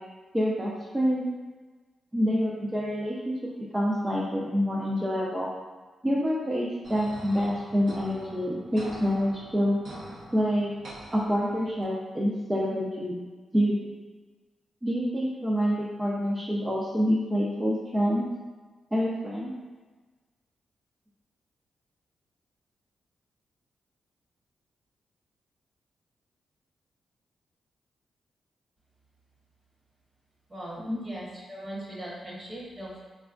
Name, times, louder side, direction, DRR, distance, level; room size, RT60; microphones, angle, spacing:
voice 1, 0.3-1.3 2.1-3.3 3.7-5.5 6.0-9.8 10.3-10.7 11.1-13.1 13.5-13.9 14.8-18.2 18.9-19.5 30.8-31.0, equal, 15° right, -7 dB, 0.5 m, -27 dB
sound 1, 6.8-11.8, right 1 dB, 70° right, 0.8 m, -45 dB
voice 2, 30.5-33.0, right 1 dB, 35° right, -5 dB, 1.1 m, -40 dB
4.1 x 2.3 x 2.4 m, 1.3 s
cardioid pair, 80°, 0 cm